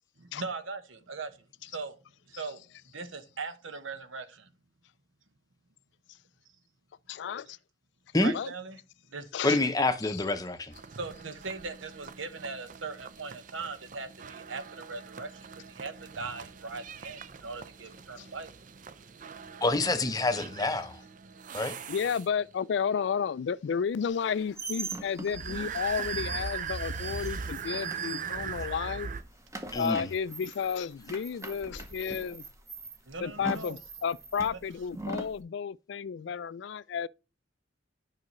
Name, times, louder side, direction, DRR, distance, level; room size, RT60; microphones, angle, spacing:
voice 1, 0.2-1.4 1.6-2.0 2.3-2.6 2.9-4.5 8.2-8.8 9.1-9.9 10.9-18.5 33.1-33.8 34.5-34.6, right 4 dB, 80° right, 1.0 m, -40 dB
voice 2, 7.1-7.6 8.3-8.5 9.3-9.6 18.2-18.3 21.9-29.1 29.7-32.4 33.2-37.1, left 7 dB, 60° left, 0.3 m, -32 dB
voice 3, 9.4-10.7 19.6-21.0 21.5-21.8 29.7-30.1, left 2 dB, 20° left, 0.7 m, -27 dB
sound 1, 10.7-22.6 25.3-29.2, right 6 dB, 40° right, 0.5 m, -41 dB
sound 2, 24.1-28.7 29.0-35.4, right 3 dB, 15° right, 0.8 m, -41 dB
9.7 x 5.7 x 3.1 m
head